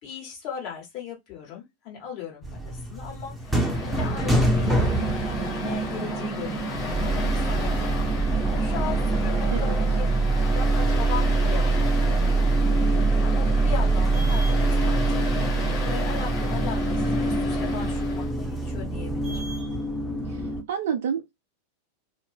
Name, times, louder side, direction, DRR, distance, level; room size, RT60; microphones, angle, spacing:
voice 1, 0.0-3.3 3.8-10.1 10.4-11.6 11.9-12.4 13.2-15.6 15.8-19.5, left 8 dB, 40° left, 1.3 m, -38 dB
sound 1, 2.4-20.6, right 2 dB, 5° right, 0.7 m, -24 dB
Mechanical fan, 3.4-18.3, right 1 dB, 25° left, 1.5 m, -32 dB
voice 2, 20.2-21.3, right 8 dB, 60° right, 0.4 m, -29 dB
2.6 x 2.0 x 3.2 m
figure-of-eight pair, 90°, 0 cm